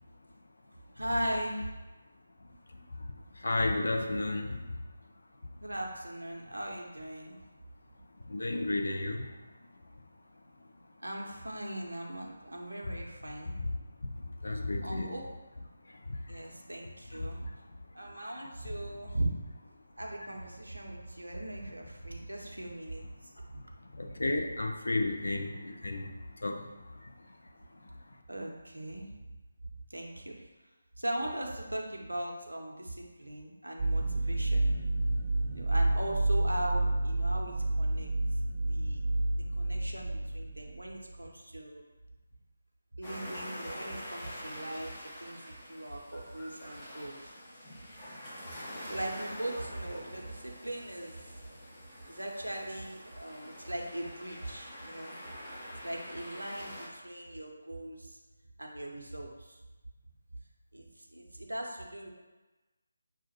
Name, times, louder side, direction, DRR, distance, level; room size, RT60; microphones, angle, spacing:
voice 1, 0.9-1.7 5.6-7.4 11.0-13.6 14.8-15.3 16.3-17.5 17.9-19.3 20.0-23.3 28.3-29.1 29.9-30.5 31.0-34.7 35.5-38.1 38.7-39.0 39.5-41.8 42.9-47.4 48.8-51.2 52.1-55.2 55.8-58.2 58.6-59.6 60.7-62.1, right 1 dB, 75° right, 0 dB, 0.6 m, -39 dB
voice 2, 3.4-4.6 8.3-9.3 13.6-13.7 14.0-15.1 16.1-16.4 23.5-23.6 23.9-26.7, left 2 dB, 60° left, 3 dB, 0.5 m, -33 dB
sound 1, 33.8-40.9, right 2 dB, 35° right, 0.8 m, -29 dB
sound 2, 43.0-56.9, equal, 15° left, 0.8 m, -46 dB
5.8 x 2.4 x 2.8 m, 1.2 s
figure-of-eight pair, 155°, 0 cm